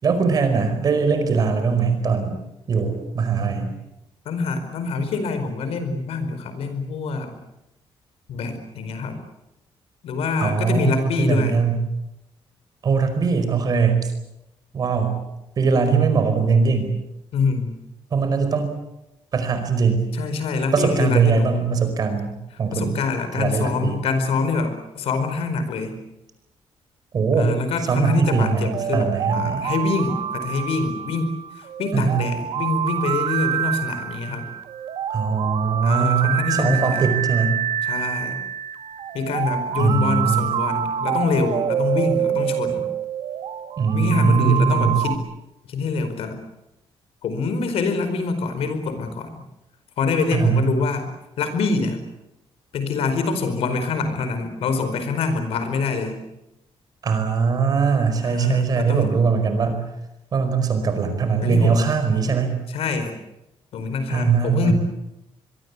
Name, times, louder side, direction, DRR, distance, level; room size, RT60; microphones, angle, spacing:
voice 1, 0.0-2.4 2.7-3.7 10.4-11.7 12.8-14.1 14.7-15.2 15.6-17.0 18.1-18.7 19.3-20.0 20.7-23.0 23.3-24.0 27.1-27.6 27.9-29.6 31.9-32.2 35.1-37.6 39.8-40.5 43.8-45.0 50.3-50.6 57.0-59.9 60.3-62.5 64.1-64.7, right 5 dB, 40° right, 8 dB, 4.9 m, -21 dB
voice 2, 4.2-7.3 8.3-9.2 10.0-11.6 17.3-17.8 20.1-21.6 22.7-26.0 27.4-31.3 31.5-34.5 35.8-37.1 37.8-38.4 39.1-42.9 43.9-45.2 45.7-46.4 47.2-49.4 50.0-52.0 52.7-56.2 58.2-59.2 61.4-61.9 62.7-63.2 63.7-64.7, left 4 dB, 75° left, 9 dB, 4.8 m, -25 dB
sound 1, 28.0-45.1, right 9 dB, 70° right, 2.2 m, -27 dB
26.0 x 22.5 x 8.4 m, 0.89 s
cardioid pair, 175°, 10 cm